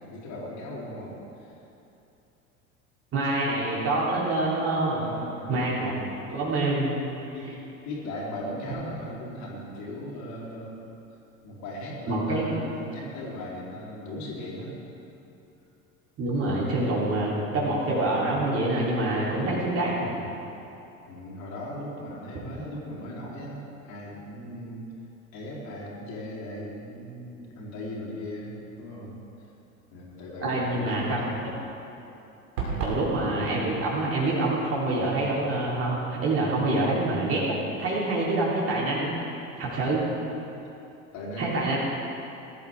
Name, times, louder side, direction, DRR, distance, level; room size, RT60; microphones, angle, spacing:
voice 1, 0.0-1.5 4.9-5.5 7.3-10.9 11.4-14.7 21.1-24.9 25.3-29.2 29.9-31.6 32.6-32.8 41.1-41.7, left 1 dB, 40° left, -5 dB, 3.7 m, -38 dB
voice 2, 3.1-5.0 5.5-5.9 6.3-7.0 12.1-12.6 16.2-20.1 30.4-31.5 32.8-39.1 39.6-40.1 41.4-41.8, right 2 dB, 30° right, -5 dB, 3.5 m, -26 dB
sound 1, 32.6-33.1, right 4 dB, 60° right, 3.0 m, -29 dB
19.5 x 12.5 x 3.6 m, 2.9 s
figure-of-eight pair, 75°, 42 cm